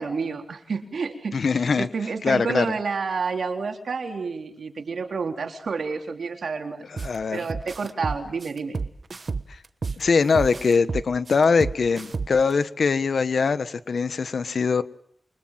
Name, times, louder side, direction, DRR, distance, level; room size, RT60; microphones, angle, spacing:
voice 1, 0.0-6.8 7.3-8.8, right 5 dB, 80° right, 3 dB, 3.8 m, -29 dB
voice 2, 1.3-1.9 2.2-2.7 7.0-7.4 10.0-14.8, left 5 dB, 70° left, 12 dB, 1.4 m, -22 dB
sound 1, 7.0-7.2 7.5-10.0 10.4-12.5, right 4 dB, 50° right, 1.2 m, -30 dB
28.5 x 24.5 x 7.7 m, 0.68 s
wide cardioid pair, 130°, 0 cm